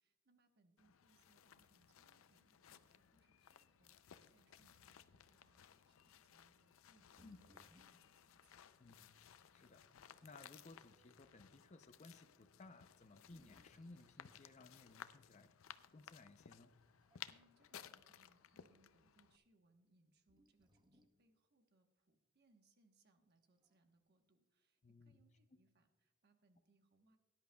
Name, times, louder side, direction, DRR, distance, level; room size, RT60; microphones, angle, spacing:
voice 1, 0.0-8.6 17.3-27.2, right 2 dB, 55° right, 6 dB, 1.1 m, -76 dB
sound 1, 0.8-19.4, left 9 dB, 80° left, 0.5 m, -60 dB
sound 2, 7.2-8.1 9.0-9.1 9.8-10.4 11.1-11.4 12.2-12.3 12.9-14.2 15.8-16.0 16.8-17.5 17.9-18.0 20.3-21.2 23.3-23.8, equal, 20° right, 0.7 m, -71 dB
voice 2, 8.8-9.2 9.5-15.6 15.9-16.7 24.8-25.2 25.5-25.6, left 2 dB, 35° left, 8 dB, 0.5 m, -60 dB
19.0 x 10.5 x 2.3 m, 1.1 s
head